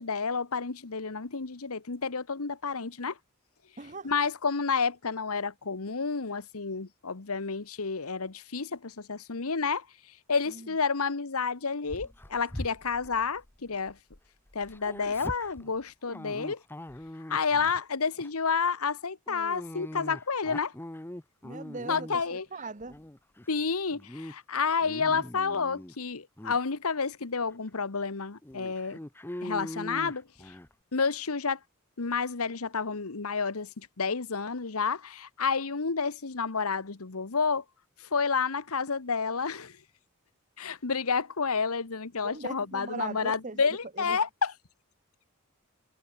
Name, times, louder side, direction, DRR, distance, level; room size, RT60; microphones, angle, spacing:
voice 1, 0.0-3.2 4.0-14.0 14.5-16.6 17.3-20.7 21.9-22.5 23.5-29.0 29.4-30.5 30.9-31.6 32.0-37.6 38.0-39.8 40.6-44.5, left 5 dB, 80° left, 1.2 m, -30 dB
voice 2, 3.8-4.1 10.5-10.7 21.4-22.9 42.2-43.6 44.0-44.2, right 3 dB, 35° right, 1.2 m, -40 dB
Dog, 11.9-14.2 14.5-17.8 18.2-18.5 19.3-22.4 22.8-23.5 23.9-24.3 24.7-26.0 26.4-26.6 27.2-27.3 27.7-27.8 28.4-30.7, left 1 dB, 10° left, 0.6 m, -42 dB
head